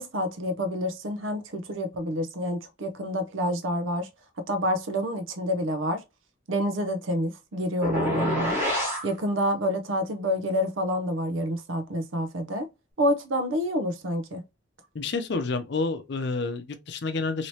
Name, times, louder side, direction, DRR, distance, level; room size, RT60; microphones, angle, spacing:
voice 1, 0.0-4.1 4.4-6.0 6.5-8.6 9.0-12.7 13.0-14.4, equal, 85° right, 0.7 m, -28 dB
sound 1, 7.8-9.1, left 1 dB, 10° right, 1.4 m, -27 dB
voice 2, 14.9-17.5, left 3 dB, 60° left, 0.5 m, -29 dB
3.1 x 2.8 x 2.8 m
head